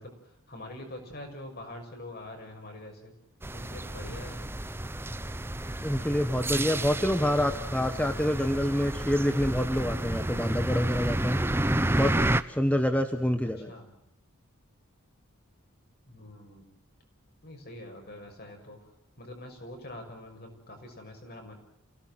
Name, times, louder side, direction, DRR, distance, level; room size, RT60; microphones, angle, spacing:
voice 1, 0.0-3.1 3.5-4.4 6.5-8.7 13.6-13.9 16.1-16.7 17.4-21.5, left 1 dB, 45° left, 3 dB, 6.2 m, -45 dB
sound 1, 3.4-12.4, right 1 dB, 10° right, 0.8 m, -30 dB
voice 2, 5.8-11.4 11.9-12.2 12.5-13.7, equal, 5° left, 7 dB, 1.1 m, -27 dB
28.5 x 17.5 x 7.6 m, 0.73 s
head